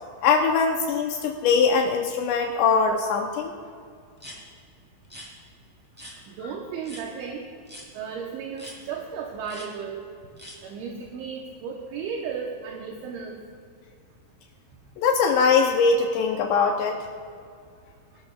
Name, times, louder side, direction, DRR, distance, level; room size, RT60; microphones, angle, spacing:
voice 1, 0.2-3.5 15.0-17.0, left 5 dB, 85° left, 3 dB, 2.5 m, -21 dB
sound 1, 4.2-4.4 5.0-5.3 6.0-6.1 6.8-7.0 7.7-7.9 8.6-8.8 9.4-9.7 10.4-10.6, equal, 5° right, 1.8 m, -42 dB
voice 2, 6.3-7.4 7.9-10.0 10.6-13.4, right 6 dB, 75° right, 0 dB, 3.1 m, -34 dB
23.5 x 12.5 x 2.4 m, 2.2 s
omnidirectional pair, 6.0 m